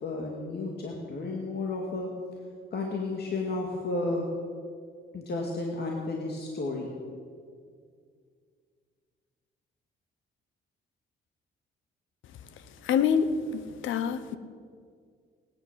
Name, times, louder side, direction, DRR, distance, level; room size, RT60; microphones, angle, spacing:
voice 1, 0.0-2.1 2.7-4.3 5.1-6.9, left 2 dB, 55° left, 0 dB, 2.3 m, -32 dB
voice 2, 12.8-14.4, left 7 dB, 80° left, 13 dB, 1.0 m, -26 dB
18.5 x 10.5 x 7.5 m, 2.1 s
cardioid pair, 90°, 20 cm